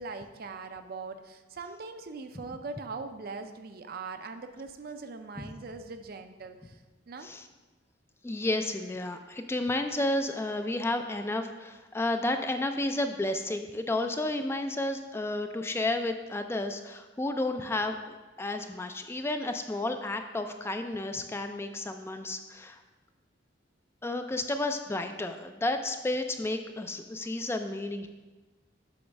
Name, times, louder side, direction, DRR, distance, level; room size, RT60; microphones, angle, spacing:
voice 1, 0.0-7.3, right 4 dB, 50° right, 8 dB, 0.5 m, -41 dB
voice 2, 8.2-22.8 24.0-28.1, left 2 dB, 15° left, 7 dB, 0.3 m, -32 dB
7.8 x 3.2 x 6.1 m, 1.2 s
head